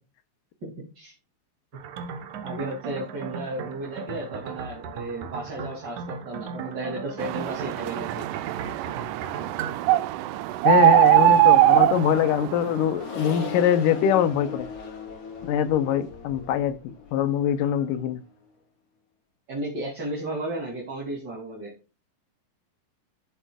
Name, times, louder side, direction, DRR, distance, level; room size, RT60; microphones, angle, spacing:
voice 1, 0.6-1.1 2.4-8.2 19.5-21.7, right 2 dB, 30° right, 2.8 m, -34 dB
sound 1, 1.7-9.9, right 6 dB, 65° right, 2.4 m, -37 dB
sound 2, 7.2-12.8, right 14 dB, 80° right, 2.0 m, -20 dB
voice 2, 10.7-14.7 15.4-16.8 17.1-18.2, left 9 dB, 75° left, 2.3 m, -23 dB
Accelerating revving vroom, 11.6-18.3, left 5 dB, 55° left, 3.6 m, -39 dB
13.5 x 7.4 x 2.3 m
omnidirectional pair, 4.0 m